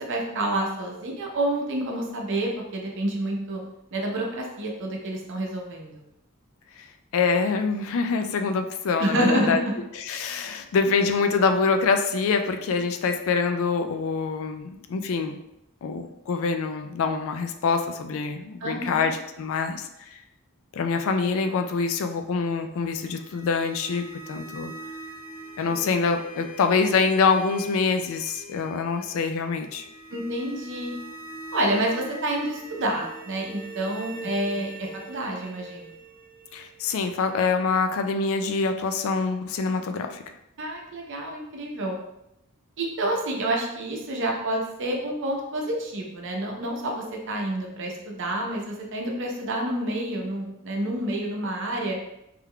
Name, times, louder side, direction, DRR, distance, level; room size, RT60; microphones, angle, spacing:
voice 1, 0.0-3.6 3.9-6.0 9.0-9.6 10.4-10.6 18.6-19.1 25.7-25.9 30.1-30.9 31.5-35.9 40.6-42.0 42.8-52.0, right 1 dB, 60° right, 0 dB, 0.7 m, -28 dB
voice 2, 7.1-9.6 9.9-15.4 15.8-20.2 20.7-24.7 25.6-29.9 36.5-40.2, left 4 dB, 65° left, 7 dB, 0.3 m, -25 dB
sound 1, 22.8-37.8, right 1 dB, 20° left, 1.0 m, -43 dB
3.6 x 3.3 x 2.2 m, 0.84 s
head